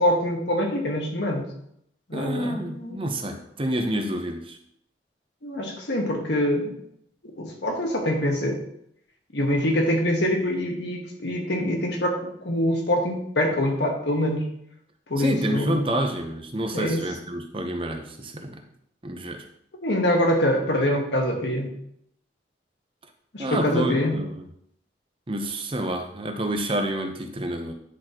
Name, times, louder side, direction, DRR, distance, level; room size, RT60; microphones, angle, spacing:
voice 1, 0.0-1.4 2.1-3.0 5.4-6.7 7.3-8.6 9.3-14.5 15.1-15.9 16.7-17.0 19.8-21.7 23.3-24.2, left 1 dB, 85° left, 1 dB, 1.5 m, -24 dB
voice 2, 2.1-4.6 15.2-18.6 19.0-19.4 23.4-24.4 25.3-27.7, right 1 dB, 30° right, 4 dB, 0.8 m, -28 dB
10.0 x 4.2 x 3.0 m, 0.73 s
head